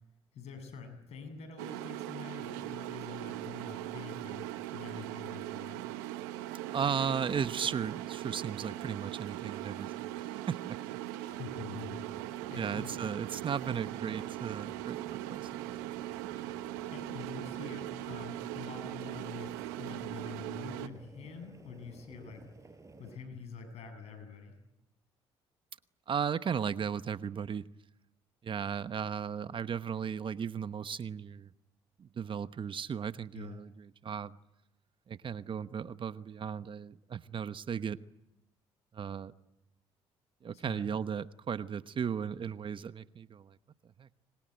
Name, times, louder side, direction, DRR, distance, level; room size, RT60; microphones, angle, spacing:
voice 1, 0.3-4.4 4.7-5.9 11.2-12.2 12.5-13.0 16.9-22.4 23.0-24.6 33.3-33.6 40.5-40.9, left 5 dB, 65° left, 7.6 m, -46 dB
sound 1, 1.6-20.9, right 15 dB, 90° right, 1.1 m, -40 dB
voice 2, 6.5-10.8 12.6-15.6 15.9-16.0 26.1-27.6 28.4-31.5 32.0-34.4 35.1-38.0 38.9-39.3 40.4-43.5 44.0-44.1, right 7 dB, 45° right, 1.0 m, -36 dB
sound 2, 11.8-23.2, right 3 dB, 25° right, 5.0 m, -55 dB
26.0 x 21.5 x 9.1 m
supercardioid pair, 60°, 12 cm